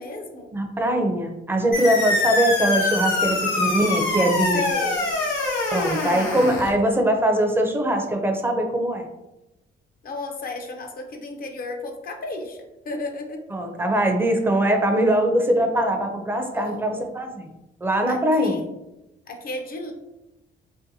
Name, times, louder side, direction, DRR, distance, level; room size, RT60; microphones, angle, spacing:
voice 1, 0.0-0.5 4.5-5.2 10.0-13.4 16.5-16.9 18.1-18.7 19.3-19.9, left 2 dB, 50° left, 3 dB, 0.5 m, -33 dB
voice 2, 0.5-4.6 5.7-9.0 13.5-17.5 17.8-18.6, right 1 dB, 10° right, 3 dB, 0.4 m, -22 dB
sound 1, 1.7-6.7, left 2 dB, 70° left, 0.9 m, -24 dB
2.7 x 2.2 x 2.6 m, 0.97 s
cardioid pair, 90°, 20 cm